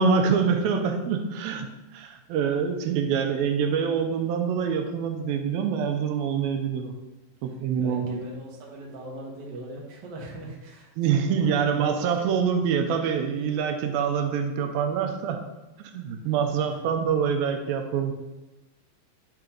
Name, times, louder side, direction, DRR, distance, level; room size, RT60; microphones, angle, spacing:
voice 1, 0.0-1.7 1.9-6.9 7.4-8.2 11.0-15.4 15.8-18.1, right 6 dB, 85° right, 5 dB, 2.4 m, -25 dB
voice 2, 7.5-11.5 12.2-12.3 16.2-16.7, right 2 dB, 50° right, -3 dB, 1.2 m, -41 dB
9.2 x 3.8 x 4.5 m, 1.1 s
omnidirectional pair, 4.3 m